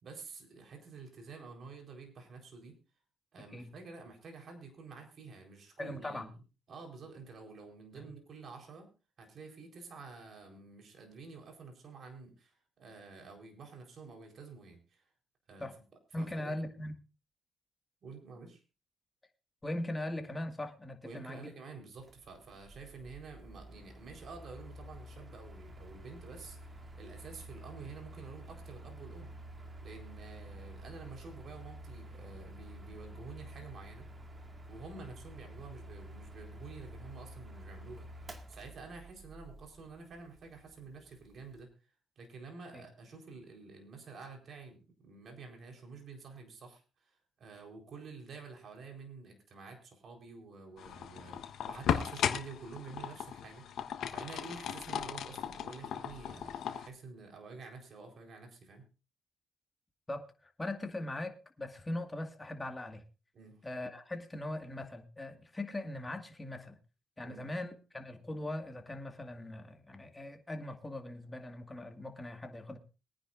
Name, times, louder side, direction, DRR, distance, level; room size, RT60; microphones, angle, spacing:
voice 1, 0.0-2.7 3.3-6.4 6.7-8.9 9.2-15.0 15.5-15.7 16.1-16.6 18.0-18.6 21.0-29.3 29.8-34.1 34.7-41.7 42.2-58.9 63.3-63.6 67.2-67.4, right 4 dB, 55° right, 3 dB, 4.3 m, -49 dB
voice 2, 3.4-3.7 5.8-6.3 8.0-8.1 15.6-15.7 16.1-16.9 19.6-21.5 42.7-42.8 60.1-63.0 63.6-66.8 67.2-72.8, left 1 dB, 15° left, 5 dB, 2.0 m, -40 dB
Mechanical fan, 22.0-41.6, right 1 dB, 30° right, 2.0 m, -50 dB
sound 1, 50.8-56.9, left 9 dB, 75° left, 1.2 m, -37 dB
22.5 x 9.9 x 2.6 m, 0.31 s
cardioid pair, 90°, 0 cm